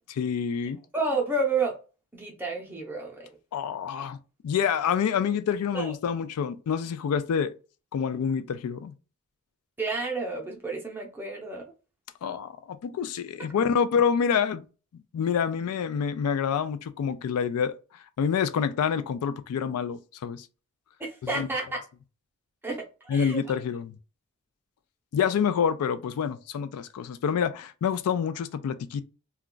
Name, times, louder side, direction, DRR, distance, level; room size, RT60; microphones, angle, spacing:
voice 1, 0.1-0.8 3.5-4.2 4.4-7.5 7.9-8.9 12.2-14.7 14.9-17.7 18.2-20.5 21.2-21.5 23.1-24.0 25.1-29.0, left 7 dB, 85° left, 0.3 m, -27 dB
voice 2, 0.9-1.8 2.1-3.3 5.7-5.9 9.8-11.7 21.0-21.8 22.6-23.4, right 3 dB, 10° right, 0.6 m, -30 dB
2.3 x 2.2 x 3.7 m
head